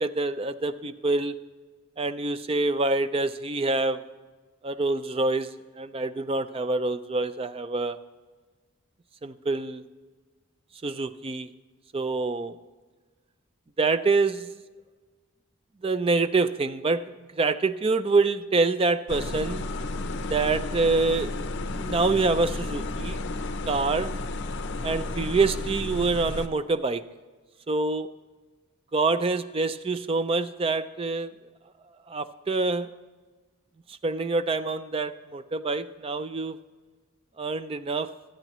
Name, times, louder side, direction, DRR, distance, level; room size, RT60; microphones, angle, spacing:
voice 1, 0.0-1.3 2.0-4.0 4.6-5.5 5.8-8.0 9.2-9.8 10.8-11.5 11.9-12.6 13.8-14.5 15.8-17.0 17.3-19.6 20.3-21.3 21.7-23.2 23.7-24.1 24.8-27.0 27.7-28.1 28.9-31.3 32.1-32.9 33.9-36.6 37.4-38.1, right 3 dB, 25° right, 12 dB, 0.3 m, -26 dB
sound 1, 19.1-26.5, left 2 dB, 50° left, 0.6 m, -32 dB
25.5 x 9.0 x 3.0 m, 1.4 s
head